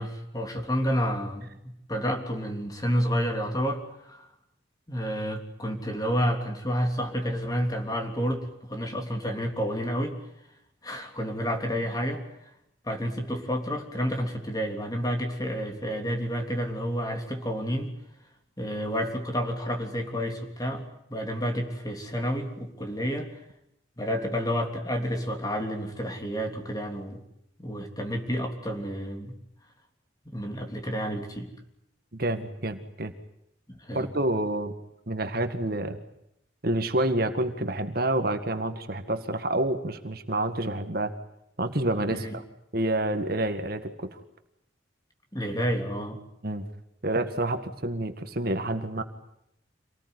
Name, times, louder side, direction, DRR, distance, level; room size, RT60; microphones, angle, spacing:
voice 1, 0.0-4.3 4.9-10.2 10.8-12.2 12.8-17.9 18.6-20.8 21.1-23.3 24.0-27.2 27.6-29.3 30.2-31.5 33.7-34.1 42.1-42.4 45.3-46.2, equal, 20° left, 4 dB, 3.4 m, -30 dB
voice 2, 32.1-33.1 33.9-34.7 35.1-36.0 36.6-41.1 41.6-42.4 42.7-44.2 46.4-46.7 47.0-49.0, right 1 dB, 50° right, 8 dB, 1.9 m, -28 dB
27.0 x 19.5 x 9.7 m, 0.78 s
head